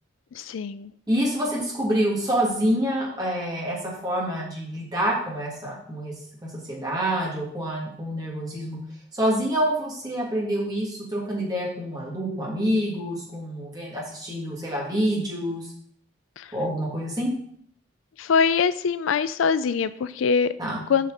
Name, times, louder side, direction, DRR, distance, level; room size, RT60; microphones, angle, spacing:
voice 1, 0.3-0.9 16.4-16.5 18.2-20.5 20.9-21.1, left 6 dB, 75° left, 15 dB, 0.4 m, -23 dB
voice 2, 1.1-6.1 6.4-8.8 9.1-15.7 16.5-17.3 20.6-20.8, equal, 20° right, -4 dB, 2.7 m, -27 dB
7.6 x 5.5 x 5.1 m, 0.62 s
head